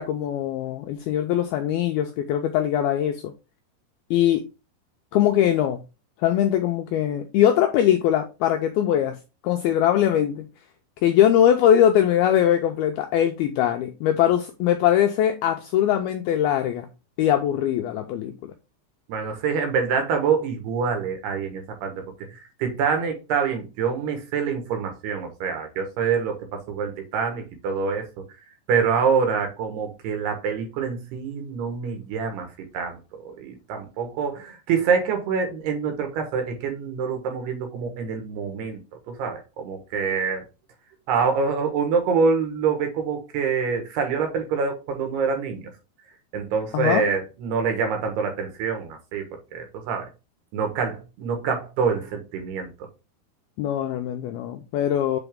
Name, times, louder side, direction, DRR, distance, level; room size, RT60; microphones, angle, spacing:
voice 1, 0.0-3.3 4.1-4.4 5.1-5.8 6.2-9.2 9.4-10.5 11.0-16.9 17.2-18.5 46.7-47.1 53.6-55.2, left 10 dB, 85° left, 2.2 m, -21 dB
voice 2, 19.1-22.0 22.6-28.2 28.7-38.8 39.1-40.4 41.1-45.7 46.3-49.3 49.5-50.1 50.5-52.7, right 6 dB, 70° right, 3.4 m, -26 dB
8.0 x 4.0 x 3.6 m
omnidirectional pair, 5.2 m